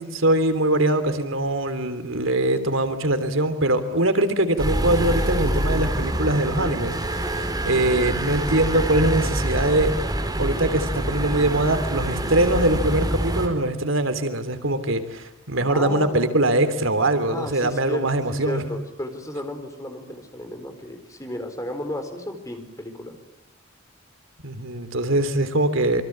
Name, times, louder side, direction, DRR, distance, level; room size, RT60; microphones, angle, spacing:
voice 1, 0.0-6.9 7.2-9.9 10.4-18.6 24.4-26.0, right 1 dB, 80° right, 10 dB, 3.3 m, -22 dB
sound 1, 4.6-13.5, right 1 dB, 20° right, 4.8 m, -26 dB
voice 2, 6.4-6.8 15.7-16.3 17.3-23.2, left 1 dB, 15° left, 6 dB, 4.5 m, -33 dB
27.5 x 24.5 x 8.8 m, 0.81 s
head